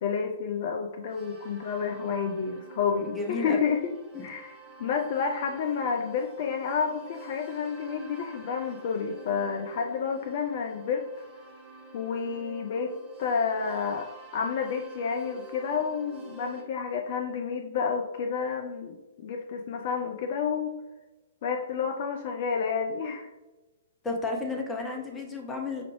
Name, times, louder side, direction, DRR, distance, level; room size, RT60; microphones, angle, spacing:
voice 1, 0.0-3.8 4.2-4.5 4.8-11.2 11.9-12.9 13.2-14.1 14.3-20.7 21.4-23.3, left 6 dB, 45° left, 4 dB, 0.3 m, -30 dB
sound 1, 1.1-16.6, right 2 dB, 10° right, 1.1 m, -48 dB
voice 2, 3.0-3.6 4.1-4.3 24.0-25.8, left 3 dB, 10° left, 1 dB, 0.6 m, -32 dB
5.6 x 2.4 x 3.0 m, 1.1 s
figure-of-eight pair, 120°, 0 cm